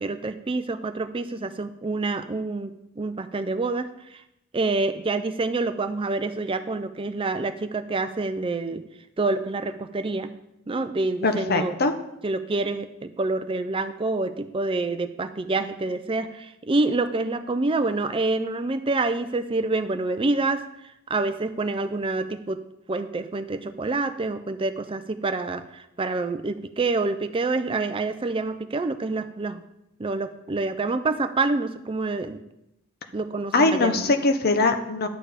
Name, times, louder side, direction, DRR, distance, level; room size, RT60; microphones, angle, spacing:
voice 1, 0.0-2.7 3.0-4.2 4.5-8.8 9.2-10.3 10.7-11.7 12.2-20.7 21.1-22.6 22.9-29.6 30.0-32.4 33.1-34.1, right 3 dB, 25° right, 10 dB, 0.4 m, -27 dB
voice 2, 11.2-11.9 33.5-35.1, left 3 dB, 45° left, 7 dB, 0.9 m, -21 dB
11.0 x 6.8 x 5.0 m, 0.84 s
head